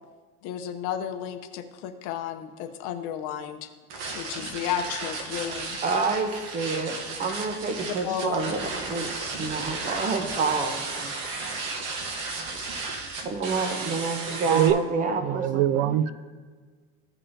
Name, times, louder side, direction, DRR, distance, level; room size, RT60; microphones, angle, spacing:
voice 1, 0.4-3.7 4.1-5.8 8.0-8.5, left 9 dB, 55° left, 7 dB, 0.8 m, -33 dB
sound 1, 3.9-14.7, right 3 dB, 55° right, 1.1 m, -34 dB
voice 2, 5.8-11.1 13.2-15.9, right 4 dB, 25° right, 6 dB, 0.9 m, -28 dB
voice 3, 14.5-14.8 15.2-16.1, right 11 dB, 80° right, 17 dB, 0.5 m, -23 dB
15.5 x 5.5 x 2.7 m, 1.5 s
cardioid pair, 155°, 30 cm